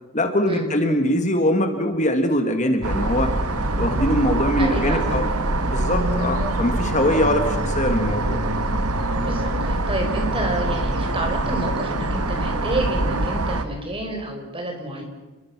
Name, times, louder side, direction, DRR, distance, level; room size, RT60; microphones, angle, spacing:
voice 1, 0.1-3.3 3.7-5.3 5.7-8.4, left 1 dB, 35° left, 6 dB, 1.8 m, -22 dB
sound 1, 2.8-13.6, right 2 dB, 85° right, 1.9 m, -24 dB
voice 2, 4.6-5.2 9.1-15.0, right 1 dB, 25° right, 3 dB, 5.0 m, -29 dB
30.0 x 22.0 x 6.1 m, 1.1 s
head